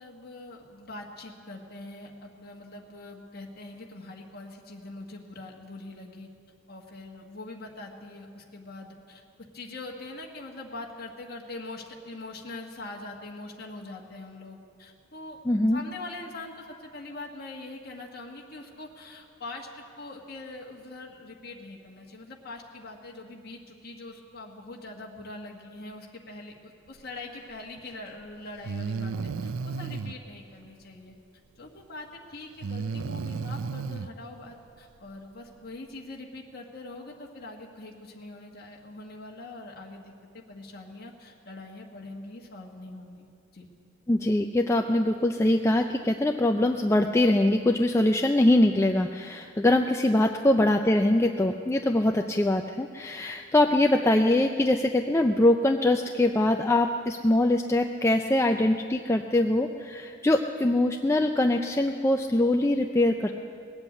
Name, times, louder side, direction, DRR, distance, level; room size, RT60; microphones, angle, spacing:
voice 1, 0.0-6.3 6.7-9.2 9.5-15.4 15.7-31.1 31.6-43.3 43.5-43.7 50.1-50.2, left 2 dB, 50° left, -1 dB, 1.4 m, -43 dB
voice 2, 15.5-15.8 44.1-63.3, left 1 dB, 15° left, 4 dB, 0.4 m, -23 dB
Breathing, 27.8-27.9 28.6-30.1 32.6-34.1, right 5 dB, 85° right, 0.5 m, -33 dB
19.5 x 8.0 x 8.3 m, 2.3 s
head